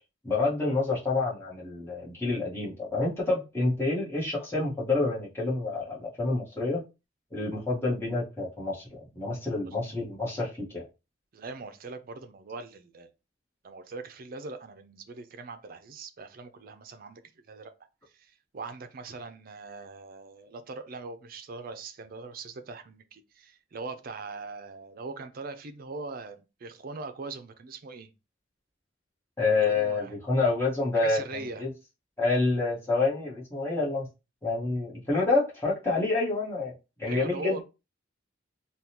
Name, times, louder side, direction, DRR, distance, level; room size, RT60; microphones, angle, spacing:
voice 1, 0.2-6.8 7.3-10.9 29.4-31.7 32.2-34.1 34.4-36.7 37.0-37.6, left 3 dB, 15° left, 1.3 m, -28 dB
voice 2, 11.3-13.1 13.6-17.2 17.5-17.7 18.1-28.1 29.6-30.1 30.9-31.7 37.1-37.6, right 3 dB, 50° right, 0.4 m, -41 dB
3.6 x 2.3 x 2.9 m
head